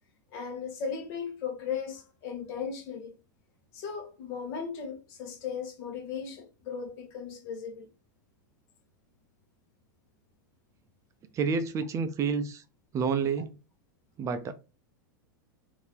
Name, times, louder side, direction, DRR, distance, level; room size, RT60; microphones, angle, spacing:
voice 1, 0.3-3.1 3.7-7.9, left 6 dB, 50° left, 1.0 m, -37 dB
voice 2, 11.3-12.6 12.9-13.6 14.2-14.5, right 5 dB, 30° right, 0.4 m, -29 dB
2.7 x 2.5 x 3.3 m
hypercardioid pair, 110°, 11 cm